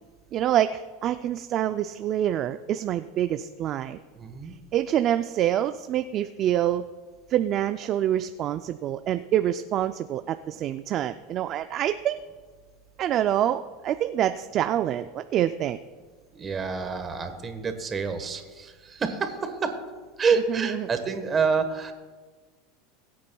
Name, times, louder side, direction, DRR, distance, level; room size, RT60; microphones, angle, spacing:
voice 1, 0.3-4.0 4.7-6.9 7.3-12.2 13.0-15.8 20.5-20.9, right 11 dB, 40° right, 10 dB, 0.3 m, -26 dB
voice 2, 4.1-4.6 16.3-19.8 20.2-21.9, right 5 dB, 20° right, 7 dB, 1.2 m, -28 dB
22.0 x 8.5 x 2.3 m, 1.4 s
supercardioid pair, 140°, 0 cm